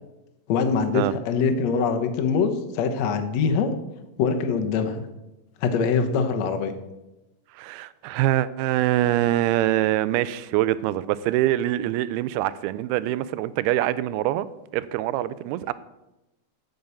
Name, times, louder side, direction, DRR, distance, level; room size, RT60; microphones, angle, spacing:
voice 1, 0.5-3.7 4.2-5.1 5.6-6.7, left 5 dB, 80° left, 6 dB, 1.5 m, -23 dB
voice 2, 7.6-14.5 14.7-15.7, right 14 dB, 85° right, 17 dB, 2.5 m, -24 dB
9.2 x 6.7 x 7.0 m, 0.97 s
omnidirectional pair, 4.5 m